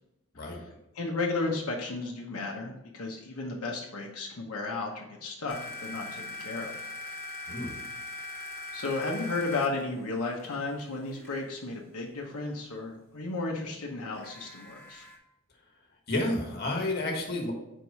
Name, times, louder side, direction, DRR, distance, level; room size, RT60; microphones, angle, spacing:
voice 1, 0.3-0.7 0.9-6.9 8.7-15.1, left 3 dB, 80° left, -2 dB, 0.9 m, -34 dB
sound 1, 5.5-11.4 14.2-15.2, left 1 dB, 10° left, 1.1 m, -42 dB
voice 2, 7.5-7.8 16.1-17.5, left 2 dB, 45° left, 1 dB, 1.4 m, -30 dB
4.7 x 4.5 x 5.4 m, 0.89 s
head